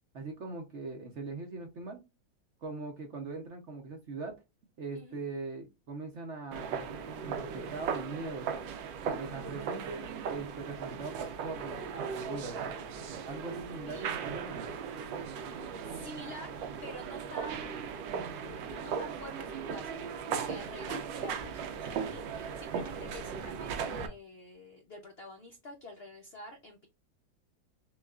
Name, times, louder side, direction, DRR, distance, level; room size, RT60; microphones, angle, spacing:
voice 1, 0.1-2.0 2.6-4.4 4.8-8.5 9.2-12.6 13.2-14.7, right 3 dB, 60° right, 3 dB, 0.8 m, -41 dB
sound 1, 6.5-24.1, right 6 dB, 90° right, 1.4 m, -37 dB
voice 2, 9.0-9.4 13.9-14.1 15.8-16.6 16.8-18.4 18.7-26.9, equal, 80° left, 3 dB, 0.5 m, -48 dB
6.0 x 2.4 x 2.3 m, 0.26 s
omnidirectional pair, 1.9 m